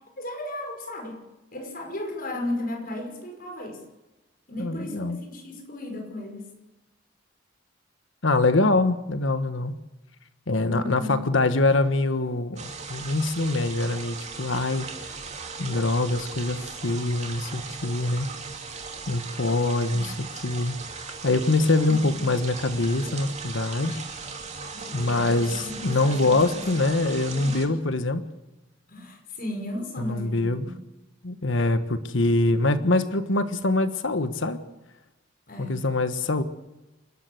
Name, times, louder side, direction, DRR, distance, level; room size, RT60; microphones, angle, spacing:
voice 1, 0.2-1.2 1.5-3.8 4.5-6.5 10.6-11.2 18.3-18.4 19.9-20.1 24.7-26.9 27.3-27.7 28.9-30.7 35.5-35.8, left 1 dB, 50° left, 2 dB, 5.5 m, -35 dB
voice 2, 4.6-5.2 8.2-9.8 10.5-15.1 15.6-18.3 19.1-20.1 20.4-20.7 21.2-24.0 24.9-28.2 30.0-30.7 31.2-34.6 35.6-36.4, left 2 dB, 80° left, 10 dB, 1.4 m, -24 dB
sound 1, 12.6-27.7, right 4 dB, 35° right, 2.7 m, -38 dB
28.0 x 12.5 x 7.9 m, 1.0 s
head